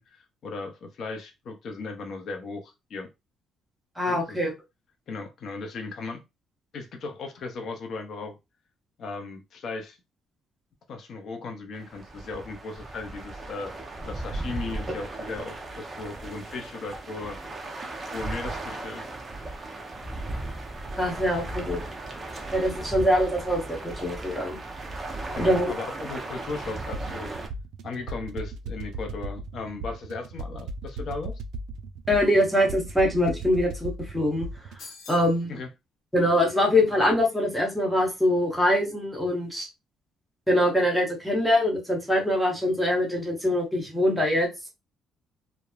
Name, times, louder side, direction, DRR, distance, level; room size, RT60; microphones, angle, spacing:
voice 1, 0.0-3.1 4.1-4.4 5.1-6.2 6.7-8.4 9.0-10.0 10.9-13.7 14.0-17.4 18.1-19.1 25.3-27.3 27.8-31.3 35.5-35.7, left 3 dB, 55° left, 0.6 m, -36 dB
voice 2, 4.0-4.5 21.0-21.8 22.5-24.6 25.4-25.6 32.1-34.5 35.1-35.5 36.1-39.7 40.5-44.7, left 1 dB, ahead, 0.9 m, -23 dB
sound 1, 11.7-27.5, right 2 dB, 25° right, 0.6 m, -36 dB
sound 2, 26.9-34.8, right 2 dB, 80° right, 0.3 m, -37 dB
sound 3, 34.8-35.4, left 4 dB, 80° left, 1.2 m, -44 dB
3.0 x 2.0 x 2.3 m
cardioid pair, 115°, 0 cm